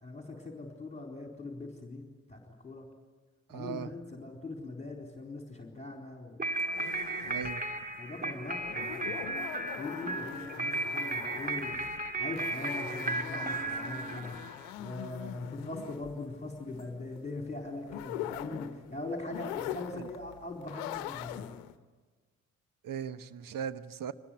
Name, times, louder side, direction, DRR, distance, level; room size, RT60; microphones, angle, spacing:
voice 1, 0.0-2.8 3.5-6.4 7.2-7.6 8.0-9.3 9.8-11.8 12.1-21.5, left 2 dB, 15° left, 1 dB, 4.1 m, -41 dB
voice 2, 3.5-3.9 7.3-7.6 19.9-20.1 22.8-24.1, right 8 dB, 55° right, 14 dB, 1.1 m, -38 dB
sound 1, 6.4-14.7, right 2 dB, 20° right, 2.3 m, -35 dB
sound 2, 6.6-21.7, left 13 dB, 80° left, 0.9 m, -43 dB
24.0 x 20.0 x 9.4 m, 1.4 s
hypercardioid pair, 45°, 41 cm